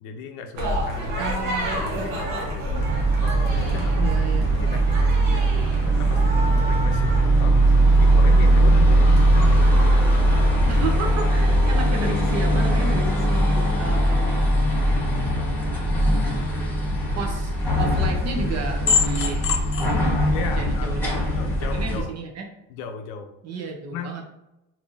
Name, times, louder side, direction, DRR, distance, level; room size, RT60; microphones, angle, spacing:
voice 1, 0.0-1.3 1.8-2.9 3.2-4.2 4.6-7.6 8.0-10.2 20.3-21.0 21.4-22.1 22.7-23.3 23.9-24.1, left 5 dB, 75° left, 6 dB, 0.6 m, -36 dB
sound 1, 0.5-11.2, equal, 80° right, 1.1 m, -30 dB
voice 2, 1.2-1.7 4.0-4.4 10.7-14.6 17.1-19.5 20.6-21.2 21.7-22.4 23.4-24.3, right 3 dB, 45° right, 2 dB, 0.9 m, -32 dB
sound 2, 2.7-22.0, right 1 dB, 5° left, 1.3 m, -20 dB
sound 3, 17.6-21.9, left 6 dB, 40° left, 0.7 m, -28 dB
3.4 x 2.7 x 2.6 m, 0.91 s
supercardioid pair, 80°, 35 cm